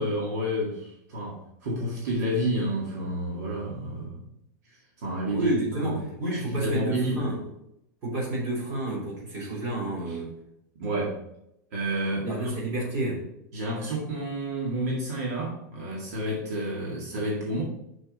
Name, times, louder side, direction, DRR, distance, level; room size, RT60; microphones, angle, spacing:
voice 1, 0.0-4.3 4.7-5.5 5.8-6.0 6.3-7.3 10.1-10.2 10.8-11.2 11.7-12.5 13.5-17.6, equal, 65° right, -3 dB, 2.1 m, -30 dB
voice 2, 5.3-7.4 8.0-10.3 12.2-13.3, right 2 dB, 30° right, -5 dB, 3.3 m, -30 dB
6.4 x 6.3 x 4.2 m, 0.80 s
supercardioid pair, 175°, 9 cm